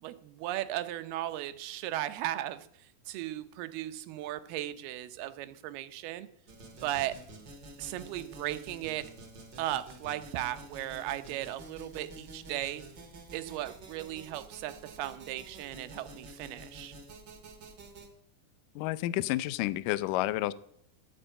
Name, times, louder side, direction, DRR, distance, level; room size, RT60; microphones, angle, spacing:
voice 1, 0.0-6.3 6.8-7.1 7.8-9.1 9.6-12.8 13.3-16.9, right 14 dB, 80° right, 11 dB, 2.7 m, -36 dB
sound 1, 6.5-18.1, right 2 dB, 35° right, 2.0 m, -49 dB
voice 2, 18.8-20.5, left 16 dB, 85° left, 17 dB, 1.9 m, -30 dB
13.5 x 9.0 x 8.8 m, 0.70 s
omnidirectional pair, 4.6 m